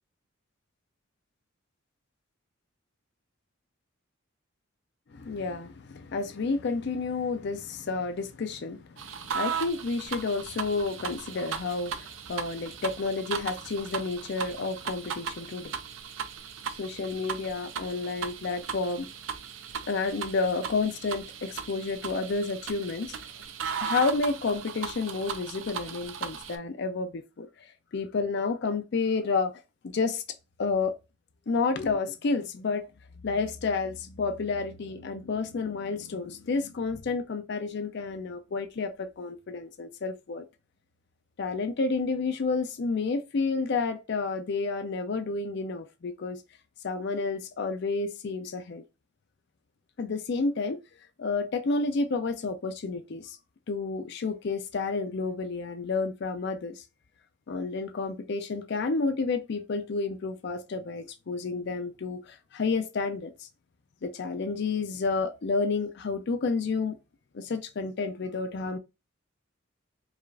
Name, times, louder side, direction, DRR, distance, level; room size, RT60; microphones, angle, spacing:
voice 1, 5.1-9.0 9.3-15.8 16.8-19.1 19.9-23.1 23.8-27.5 27.9-29.5 29.8-30.2 30.6-30.9 31.5-32.8 33.2-40.5 41.4-46.4 46.8-48.8 50.0-50.8 51.2-53.4 53.7-56.8 57.5-63.3 64.0-67.0 67.3-68.8, left 4 dB, 55° left, 0.4 m, -30 dB
sound 1, 9.0-26.6, right 7 dB, 70° right, 0.5 m, -37 dB
4.8 x 2.4 x 2.4 m
head